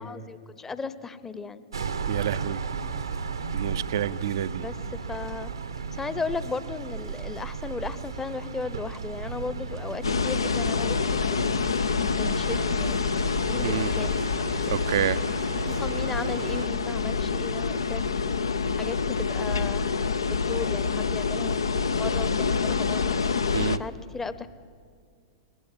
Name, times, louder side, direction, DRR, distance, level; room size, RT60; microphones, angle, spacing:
voice 1, 0.0-1.6 4.6-5.5 6.0-11.7 12.2-13.0 13.5-14.2 15.7-18.3 18.7-23.1 23.8-24.5, left 4 dB, 15° left, 15 dB, 0.8 m, -36 dB
sound 1, 1.7-16.7, right 5 dB, 80° right, 1.0 m, -35 dB
voice 2, 2.1-2.6 3.5-4.7 13.6-13.9 14.7-15.2 23.5-23.8, right 10 dB, 60° right, 14 dB, 0.5 m, -28 dB
sound 2, 10.0-23.8, left 5 dB, 75° left, 0.6 m, -27 dB
20.5 x 18.0 x 7.5 m, 2.1 s
figure-of-eight pair, 95°, 2 cm